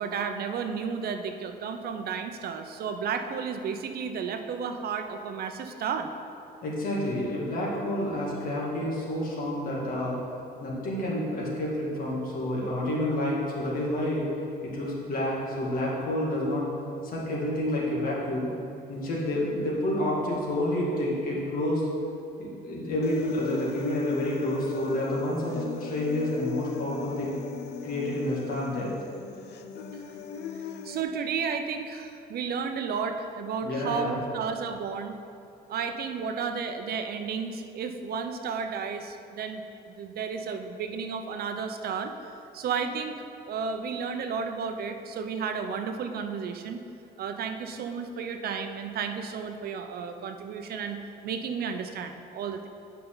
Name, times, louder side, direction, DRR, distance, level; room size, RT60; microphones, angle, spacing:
voice 1, 0.0-6.1 30.8-35.2 35.7-42.1 42.5-43.2 43.5-46.8 47.2-52.7, right 6 dB, 65° right, 6 dB, 0.6 m, -32 dB
voice 2, 6.6-10.2 10.6-14.2 14.6-16.6 17.0-18.5 18.9-21.9 22.4-27.3 27.8-28.9 33.6-34.4, left 1 dB, 55° left, -5 dB, 2.1 m, -29 dB
Human voice, 23.0-31.0, left 6 dB, 75° left, 0.6 m, -38 dB
10.0 x 5.6 x 3.9 m, 2.6 s
cardioid pair, 135°, 17 cm